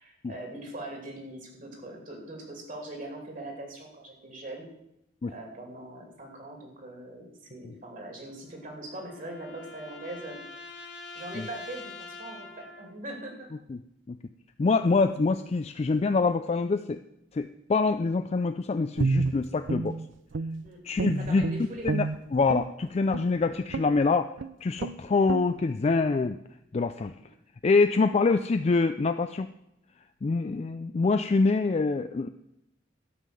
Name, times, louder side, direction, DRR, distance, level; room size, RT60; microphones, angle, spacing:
voice 1, 0.0-4.7 5.3-10.4 11.1-13.5 16.5-16.6 20.6-20.8 21.2-21.9 27.2-27.3, right 1 dB, 45° right, 2 dB, 2.7 m, -41 dB
sound 1, 8.3-13.0, left 3 dB, 65° left, 1.5 m, -45 dB
voice 2, 14.6-17.0 17.3-20.0 20.8-21.5 21.8-24.3 24.6-26.4 26.7-27.1 27.6-29.5 30.2-32.3, left 4 dB, 35° left, 9 dB, 0.3 m, -25 dB
Guitar, 19.0-20.7 21.0-22.7 23.1-23.3 23.7-24.0 24.4-24.5 24.8-25.0 25.3-25.5, right 4 dB, 70° right, 0.5 m, -30 dB
12.5 x 5.7 x 7.6 m, 0.82 s
head